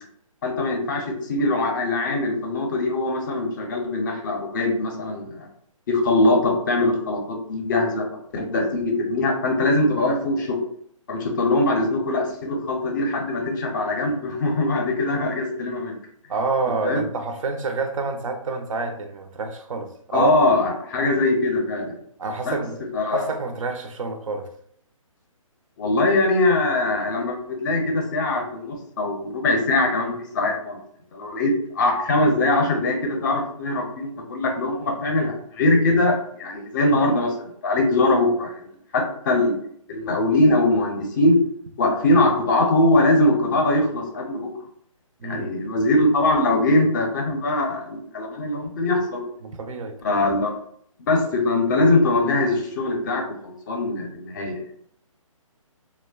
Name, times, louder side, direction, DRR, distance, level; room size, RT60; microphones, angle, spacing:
voice 1, 0.4-5.5 5.9-8.1 8.3-10.6 11.1-16.0 16.8-17.0 20.1-22.0 22.4-22.6 22.9-23.3 25.8-30.8 31.1-38.6 38.9-39.6 39.9-41.4 41.8-44.5 45.2-49.3 50.0-50.5 51.1-54.6, left 2 dB, 35° left, 2 dB, 0.5 m, -22 dB
voice 2, 16.3-20.3 22.2-24.5 45.2-45.5 49.4-50.0, right 3 dB, 70° right, 6 dB, 0.5 m, -28 dB
2.5 x 2.1 x 2.3 m, 0.67 s
hypercardioid pair, 145°, 18 cm